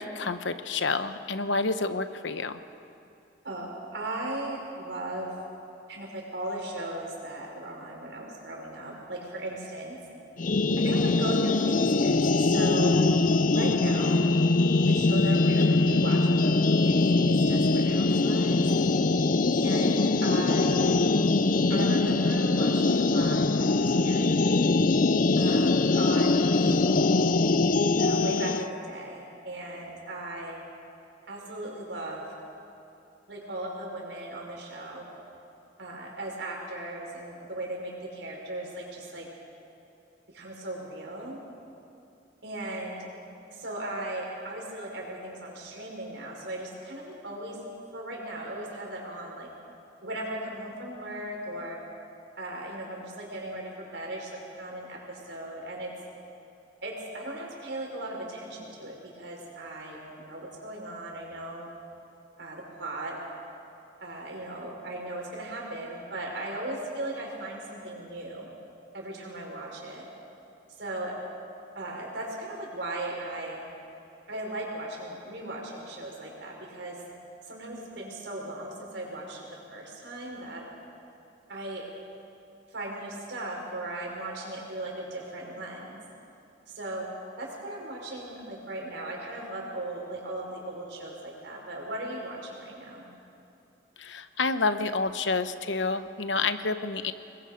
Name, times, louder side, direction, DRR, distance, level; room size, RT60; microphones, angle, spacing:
voice 1, 0.0-2.6 94.0-97.1, left 3 dB, 80° left, 10 dB, 1.0 m, -29 dB
voice 2, 3.9-5.3 5.9-10.0 10.8-13.0 13.5-14.3 14.9-18.6 19.5-20.9 21.7-24.5 25.4-27.2 28.0-30.6 31.3-32.2 33.3-35.1 35.8-39.3 40.3-41.4 42.4-43.1 43.5-47.6 47.9-49.5 50.0-51.8 52.4-55.9 56.8-61.7 62.4-63.2 64.0-68.5 68.9-70.0 70.8-71.1 71.8-73.6 74.3-77.0 77.4-79.4 79.7-80.6 81.5-81.8 82.7-86.0 86.7-87.1 87.4-93.1, right 1 dB, 70° right, -1 dB, 5.3 m, -37 dB
sound 1, 10.4-28.7, left 3 dB, 45° left, 0.6 m, -23 dB
28.0 x 21.5 x 5.2 m, 2.8 s
head